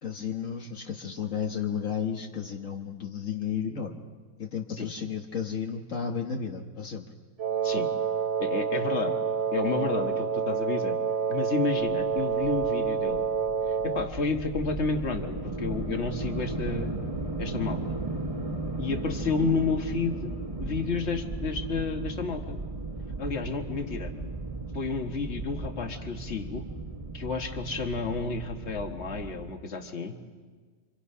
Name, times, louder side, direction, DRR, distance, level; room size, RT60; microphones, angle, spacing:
voice 1, 0.0-4.0 4.4-7.1, left 7 dB, 70° left, 2 dB, 1.7 m, -33 dB
Wind instrument woodwind instrument, 7.4-14.2, right 6 dB, 60° right, 1.7 m, -28 dB
voice 2, 8.4-9.2 9.5-11.0 11.3-13.2 13.8-16.9 17.4-17.8 18.8-20.3 20.6-22.6 23.2-24.1 24.7-26.7 27.1-30.2, left 4 dB, 55° left, 5 dB, 1.9 m, -31 dB
sound 1, 12.0-29.5, right 2 dB, 25° right, 1.9 m, -36 dB
29.5 x 25.5 x 5.7 m, 1.5 s
omnidirectional pair, 1.4 m